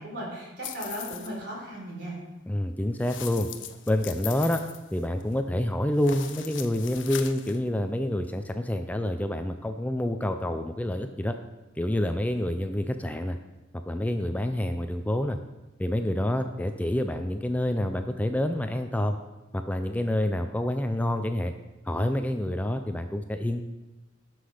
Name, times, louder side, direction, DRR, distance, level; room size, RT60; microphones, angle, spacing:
voice 1, 0.0-2.2, equal, 65° right, -3 dB, 3.8 m, -36 dB
sound 1, 0.6-1.4 3.0-5.4 5.9-7.6, left 10 dB, 85° left, 0.7 m, -40 dB
voice 2, 2.5-3.5 3.9-4.6 4.9-11.3 11.8-13.4 13.9-15.4 15.8-19.2 19.5-21.5 21.9-23.6, left 1 dB, 10° left, 7 dB, 0.4 m, -27 dB
11.5 x 6.0 x 4.9 m, 1.1 s
head